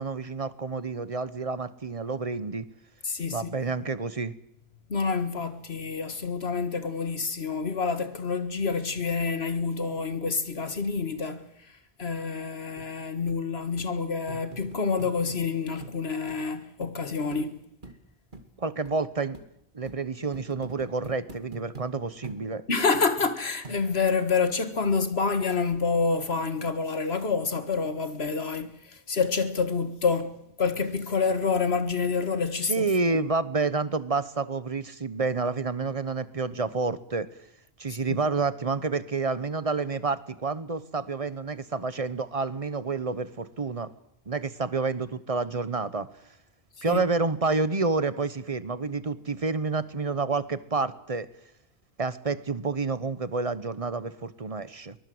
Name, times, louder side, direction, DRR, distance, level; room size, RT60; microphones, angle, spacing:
voice 1, 0.0-2.7 3.3-4.3 18.6-19.4 19.7-22.6 32.7-37.3 37.8-43.9 44.3-46.1 46.8-51.3 52.0-55.0, right 4 dB, 35° right, 1.1 m, -29 dB
voice 2, 3.0-3.5 4.9-11.5 12.0-17.6 22.7-30.3 30.6-33.3 38.1-38.2 46.9-47.0, left 5 dB, 80° left, 2.0 m, -28 dB
sound 1, 12.8-12.9 13.3-13.4 13.8-13.9 14.3-15.4 15.8-16.0 16.3-16.4 16.8-16.9 17.3-17.4 17.8-18.0 18.3-18.5 18.8-19.0 19.3-19.5 19.9-20.0 20.3-21.9 22.2-22.4 22.9-23.3 23.6-24.1 24.6-24.7, right 2 dB, 50° right, 2.7 m, -44 dB
23.0 x 21.0 x 7.9 m
omnidirectional pair, 1.0 m